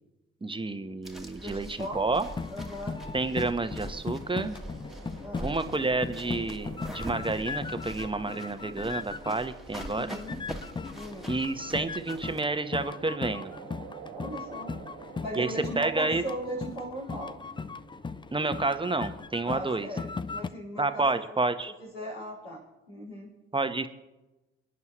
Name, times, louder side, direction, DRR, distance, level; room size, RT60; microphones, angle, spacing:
voice 1, 0.4-2.3 3.1-4.6 5.4-10.2 11.3-13.5 15.4-16.2 18.3-19.9 20.8-21.7 23.5-23.9, right 3 dB, 15° right, 9 dB, 1.1 m, -29 dB
sound 1, 1.0-12.4, right 1 dB, ahead, 1.8 m, -44 dB
voice 2, 1.4-2.0 2.5-3.0 5.2-5.5 9.9-10.4 10.9-11.3 14.1-17.4 19.4-21.0 21.8-22.6 22.9-23.3, right 1 dB, 90° left, -8 dB, 4.5 m, -38 dB
sound 2, 1.9-9.5 9.8-20.5, left 4 dB, 15° left, 0.5 m, -38 dB
sound 3, 3.0-19.8, right 7 dB, 75° right, 1.5 m, -50 dB
27.5 x 9.5 x 3.1 m, 1.1 s
hypercardioid pair, 45°, 30 cm